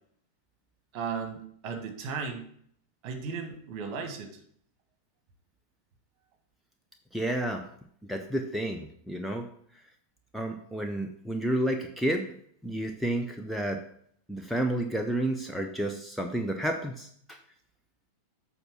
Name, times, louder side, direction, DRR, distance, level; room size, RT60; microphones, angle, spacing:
voice 1, 0.9-2.5 3.0-4.3, right 5 dB, 40° right, 5 dB, 1.4 m, -35 dB
voice 2, 7.1-7.7 8.0-9.5 10.3-12.3 12.6-13.8 14.3-17.4, right 1 dB, ahead, 3 dB, 0.6 m, -31 dB
7.9 x 4.2 x 6.0 m, 0.65 s
figure-of-eight pair, 90°, 0 cm